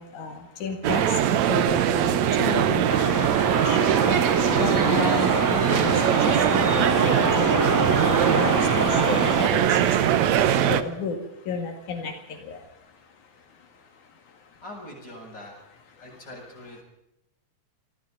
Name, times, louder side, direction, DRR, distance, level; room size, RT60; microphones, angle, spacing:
voice 1, 0.0-2.9 3.2-3.3 3.6-3.8 4.6-6.0 6.3-7.7 8.1-9.2 9.5-10.2 10.7-11.2 11.5-12.1 12.4-12.6, left 5 dB, 85° left, 3 dB, 3.6 m, -32 dB
sound 1, 0.8-10.8, right 10 dB, 70° right, 2.2 m, -22 dB
sound 2, 2.9-9.5, right 1 dB, 10° right, 0.9 m, -26 dB
voice 2, 14.6-15.5 16.0-16.8, left 1 dB, 35° left, -1 dB, 8.2 m, -42 dB
28.5 x 25.0 x 4.0 m, 0.79 s
omnidirectional pair, 3.4 m